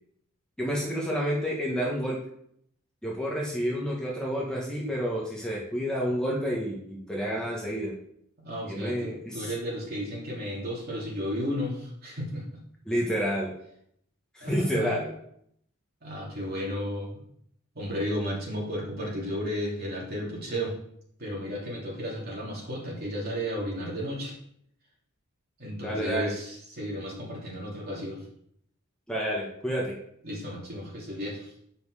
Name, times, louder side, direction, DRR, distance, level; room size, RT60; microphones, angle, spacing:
voice 1, 0.6-2.2 3.0-7.9 8.7-9.5 12.9-13.5 14.3-15.1 25.8-26.3 29.1-29.9, equal, 5° left, -4 dB, 1.3 m, -29 dB
voice 2, 8.4-12.4 14.4-15.0 16.0-17.2 17.7-20.7 21.2-24.3 25.6-28.2 30.2-31.5, equal, 45° right, -4 dB, 2.9 m, -33 dB
8.9 x 5.4 x 4.9 m, 0.70 s
head